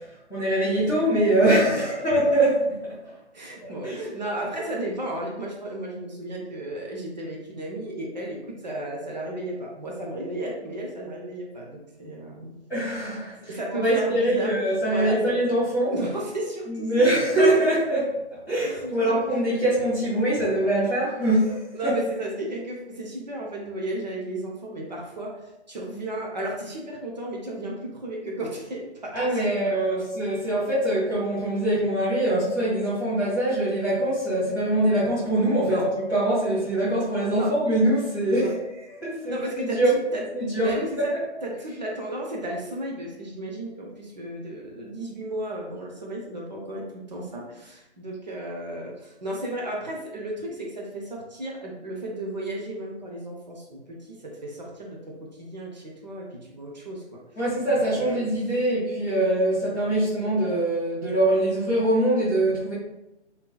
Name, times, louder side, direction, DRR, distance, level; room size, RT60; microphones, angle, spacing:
voice 1, 0.3-3.0 3.6-3.9 12.7-15.9 16.7-18.1 18.5-21.9 29.1-38.6 38.9-39.9 40.3-40.7 41.0-41.1 57.3-62.7, right 1 dB, ahead, -33 dB, 0.5 m, -23 dB
voice 2, 3.3-12.5 13.5-14.6 14.9-15.4 15.9-16.9 17.6-17.7 18.8-19.3 21.7-30.0 35.7-35.9 37.3-37.5 38.3-38.5 39.3-40.2 40.5-41.1 41.4-57.2 58.0-58.2, right 1 dB, 40° right, -2 dB, 0.6 m, -34 dB
3.5 x 2.7 x 2.3 m, 0.93 s
figure-of-eight pair, 150°, 34 cm